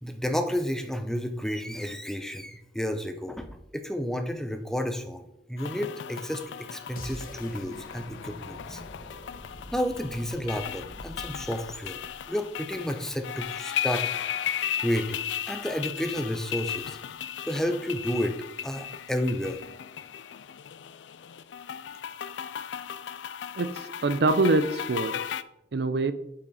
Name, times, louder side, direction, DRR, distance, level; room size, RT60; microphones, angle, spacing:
voice 1, 0.0-5.2 5.5-8.8 9.7-12.0 12.3-14.1 14.4-14.5 14.8-15.2 15.5-17.0 17.4-18.4 18.6-19.6, equal, 5° left, 7 dB, 0.6 m, -31 dB
sound 1, 5.6-25.4, left 9 dB, 90° left, 0.4 m, -36 dB
sound 2, 7.0-12.9, left 1 dB, 50° left, 0.9 m, -45 dB
voice 2, 23.6-25.2 25.7-26.1, right 2 dB, 65° right, 12 dB, 0.5 m, -24 dB
8.4 x 5.6 x 4.1 m, 0.81 s
head